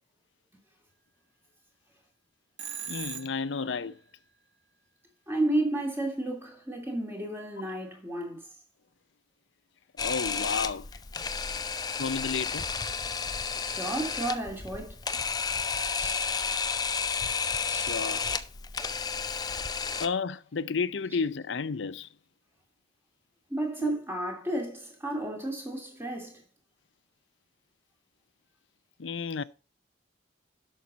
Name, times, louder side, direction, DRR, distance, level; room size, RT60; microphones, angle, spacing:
Telephone, 2.6-3.7, right 8 dB, 65° right, 1.4 m, -39 dB
voice 1, 2.9-4.0 10.0-10.9 12.0-12.7 13.5-13.6 17.7-18.2 20.0-22.1 23.8-23.9 29.0-29.4, left 5 dB, 85° left, 0.6 m, -32 dB
voice 2, 5.3-8.4 13.6-15.0 15.9-16.2 17.6-17.9 23.5-26.4, right 1 dB, 15° right, 2.8 m, -32 dB
Camera, 10.0-20.1, left 5 dB, 20° left, 0.6 m, -32 dB
11.5 x 6.5 x 4.1 m
head